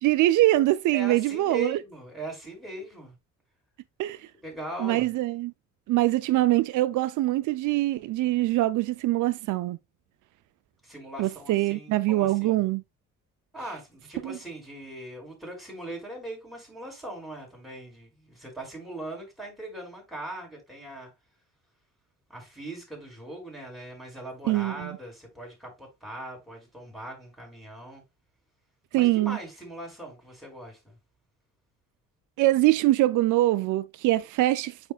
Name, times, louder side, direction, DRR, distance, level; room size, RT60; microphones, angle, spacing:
voice 1, 0.0-1.8 4.0-4.2 4.8-5.5 5.9-9.8 11.2-12.8 14.2-14.4 24.5-24.9 28.9-29.4 32.4-34.9, right 16 dB, 80° right, 0.4 m, -23 dB
voice 2, 0.9-3.1 4.4-5.1 10.8-12.7 13.5-21.1 22.3-28.0 28.9-31.0, right 1 dB, ahead, 5.1 m, -40 dB
9.4 x 5.0 x 2.3 m
cardioid pair, 90°, 30 cm